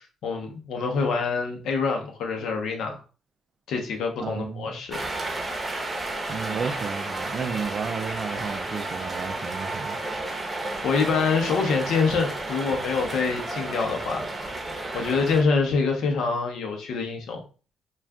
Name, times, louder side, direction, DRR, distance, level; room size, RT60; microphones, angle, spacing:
voice 1, 0.0-3.0 3.7-5.0 10.8-14.2 14.9-17.4, left 4 dB, 75° left, 0.7 m, -25 dB
voice 2, 4.2-4.8 6.3-10.0, right 6 dB, 50° right, 0.3 m, -32 dB
sound 1, 4.9-15.4, right 2 dB, 20° right, 0.7 m, -32 dB
2.4 x 2.3 x 3.4 m
cardioid pair, 90°, 0 cm